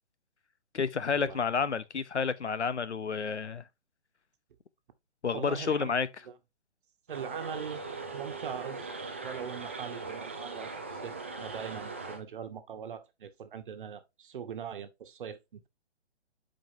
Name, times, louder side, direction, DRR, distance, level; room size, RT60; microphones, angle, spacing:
voice 1, 0.7-3.6 5.2-6.1, left 5 dB, 85° left, 0.9 m, -30 dB
voice 2, 5.3-5.9 7.1-7.8 8.1-8.9 9.2-11.1 11.4-15.7, right 7 dB, 50° right, 1.3 m, -41 dB
sound 1, 7.1-12.2, right 3 dB, 10° right, 0.4 m, -40 dB
8.9 x 5.3 x 2.8 m
figure-of-eight pair, 135°, 34 cm